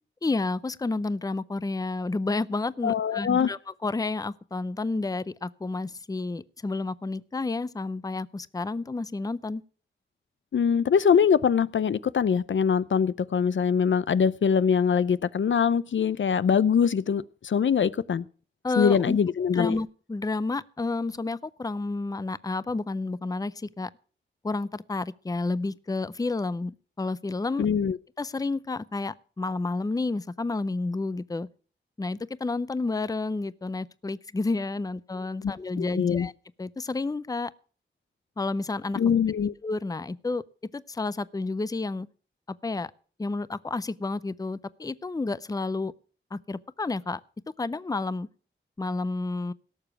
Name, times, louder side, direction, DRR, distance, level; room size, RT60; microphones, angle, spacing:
voice 1, 0.2-9.6 18.6-19.2 19.5-23.9 24.4-26.7 27.0-27.7 28.2-31.5 32.0-36.3 36.6-37.5 38.4-39.0 39.6-40.4 40.7-42.1 42.6-42.9 43.2-45.9 46.3-47.2 47.6-48.3 48.8-49.5, left 3 dB, 20° left, 0.5 m, -30 dB
voice 2, 2.8-3.5 10.5-18.3 18.8-19.8 27.6-28.0 35.4-35.5 35.8-36.3 39.0-39.5, left 7 dB, 70° left, 0.5 m, -23 dB
17.5 x 7.0 x 5.9 m
wide cardioid pair, 115°, 20 cm